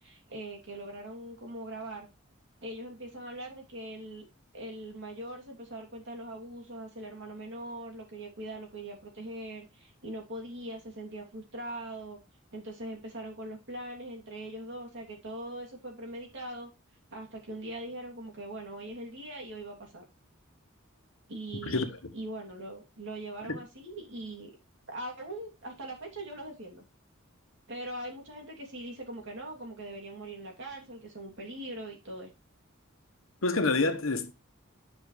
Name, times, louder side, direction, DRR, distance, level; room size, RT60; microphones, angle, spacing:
voice 1, 0.0-2.1 2.6-4.3 4.5-12.2 12.5-16.7 17.1-20.0 21.3-24.5 24.9-26.8 27.7-32.3, right 1 dB, 60° right, 2.9 m, -41 dB
voice 2, 21.5-21.9 23.4-23.6 33.4-34.3, left 3 dB, 70° left, 1.2 m, -28 dB
9.6 x 5.8 x 3.3 m
head